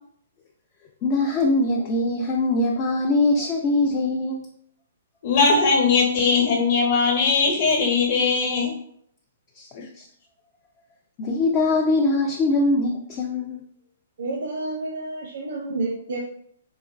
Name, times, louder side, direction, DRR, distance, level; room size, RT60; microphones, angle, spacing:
voice 1, 1.0-4.4 9.6-9.7 10.0-10.1 11.2-13.6, left 2 dB, 20° left, 0 dB, 0.4 m, -22 dB
voice 2, 5.2-8.7 9.7-9.8, left 4 dB, 40° left, 0 dB, 1.0 m, -20 dB
voice 3, 14.2-16.2, right 2 dB, 75° right, 0 dB, 0.7 m, -29 dB
4.1 x 3.1 x 2.4 m, 0.65 s
hypercardioid pair, 165°, 0 cm